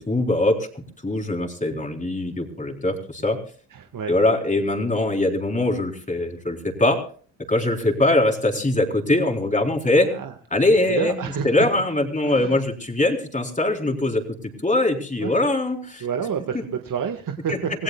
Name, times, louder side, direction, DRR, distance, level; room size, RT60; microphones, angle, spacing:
voice 1, 0.0-3.4 4.1-7.0 7.5-10.1 10.5-11.2 11.4-16.0 16.5-16.6 17.5-17.6, left 2 dB, 15° left, 2 dB, 4.0 m, -22 dB
voice 2, 3.7-4.1 10.1-10.3 10.9-11.5 12.2-12.6 15.2-15.5 16.0-17.7, right 7 dB, 40° right, 5 dB, 1.7 m, -29 dB
27.5 x 16.5 x 2.3 m, 0.43 s
supercardioid pair, 75°, 50 cm